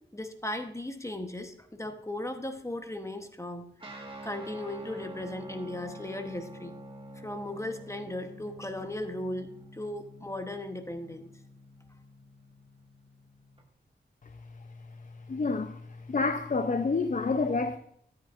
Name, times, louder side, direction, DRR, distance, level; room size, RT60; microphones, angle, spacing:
voice 1, 0.1-3.6 4.2-6.7 7.2-11.3, left 1 dB, 15° left, 1.0 m, -37 dB
Guitar, 3.8-13.6, right 1 dB, 30° right, 1.7 m, -47 dB
voice 2, 15.3-15.8 16.1-17.8, left 4 dB, 45° left, 0.6 m, -28 dB
13.5 x 8.8 x 2.5 m
wide cardioid pair, 75°, 18 cm